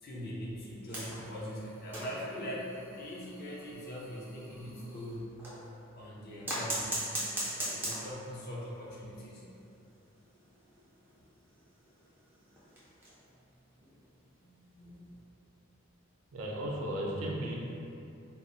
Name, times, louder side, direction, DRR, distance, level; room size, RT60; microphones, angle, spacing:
voice 1, 0.0-5.4 5.9-7.0 7.5-9.4 14.4-15.1, equal, 45° left, -5 dB, 0.5 m, -42 dB
sound 1, 0.9-5.7 6.4-8.4 8.7-8.8 9.1-9.2 9.5-9.6 10.2-13.3 13.8-14.0 15.2-15.3, right 1 dB, 10° right, 0.4 m, -40 dB
voice 2, 16.3-17.6, right 1 dB, 75° right, -2 dB, 0.4 m, -35 dB
2.1 x 2.0 x 3.6 m, 2.7 s
head